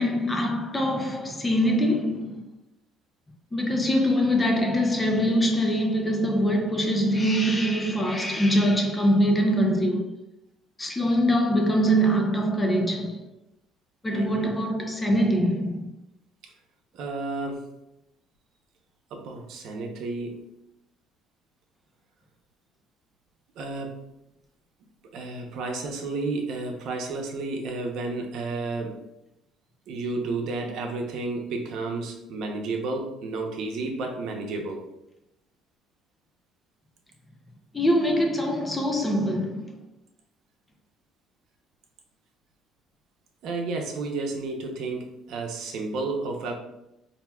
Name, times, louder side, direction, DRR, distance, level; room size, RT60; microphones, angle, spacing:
voice 1, 0.0-2.4 3.5-10.1 10.8-13.3 14.0-16.0 37.7-39.8, equal, 15° left, 0.5 m, -23 dB
voice 2, 14.1-14.5 16.4-16.5 16.9-17.7 19.1-20.4 23.6-24.0 25.1-29.0 29.9-34.8 43.4-46.5, right 3 dB, 65° right, 0.8 m, -31 dB
5.5 x 2.8 x 2.3 m
cardioid pair, 130°, 0 cm